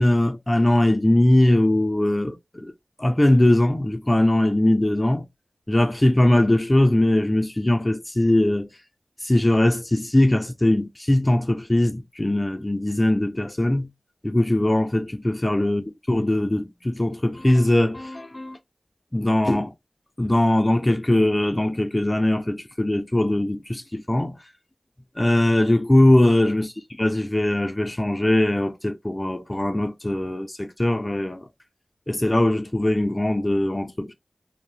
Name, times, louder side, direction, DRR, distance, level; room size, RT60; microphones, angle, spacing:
voice 1, 0.0-2.7 3.0-5.3 5.7-8.7 9.2-13.9 14.2-18.6 19.1-19.7 20.2-24.3 25.2-26.7 27.0-31.5 32.1-34.1, left 1 dB, 25° left, 0.4 m, -21 dB
2.6 x 2.0 x 3.1 m
cardioid pair, 45°, 0 cm